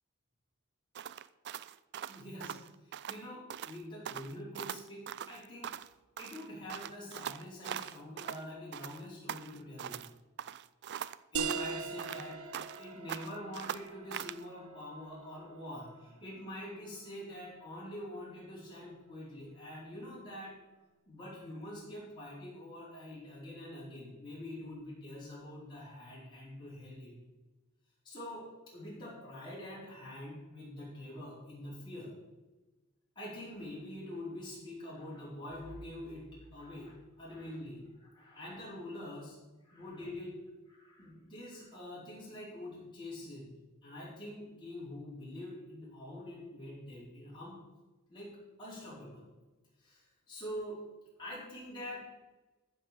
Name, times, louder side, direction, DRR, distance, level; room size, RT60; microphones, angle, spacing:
sound 1, 0.9-3.2 3.5-3.8 4.0-5.9 6.2-8.4 8.7-10.1 10.4-12.8 13.1-14.4, right 9 dB, 50° right, 0.4 m, -42 dB
voice 1, 2.0-5.7 6.2-10.1 11.3-12.4 12.8-20.5 21.1-27.2 28.0-32.1 33.1-39.4 39.6-40.4 40.7-43.5 43.8-47.6 48.1-48.3 48.6-49.2 49.8-50.8 51.2-52.0, left 1 dB, 20° left, -8 dB, 4.4 m, -45 dB
sound 2, 11.3-16.7, right 5 dB, 80° right, 1.0 m, -41 dB
14.0 x 5.1 x 7.5 m, 1.2 s
head